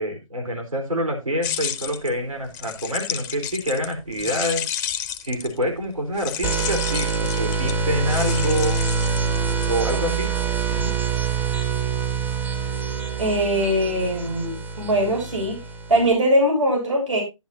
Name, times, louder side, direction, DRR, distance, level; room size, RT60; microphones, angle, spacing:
voice 1, 0.0-4.6 5.2-8.8 9.7-10.3 10.7-11.0, equal, 80° right, 5 dB, 4.2 m, -26 dB
sound 1, 1.4-5.7 6.2-10.1, left 10 dB, 15° left, 0.6 m, -31 dB
sound 2, 6.4-16.1, right 6 dB, 15° right, 0.8 m, -25 dB
voice 2, 13.2-15.6 15.9-17.2, equal, 65° right, 0 dB, 6.8 m, -21 dB
11.0 x 11.0 x 2.7 m, 0.24 s
hypercardioid pair, 150°, 17 cm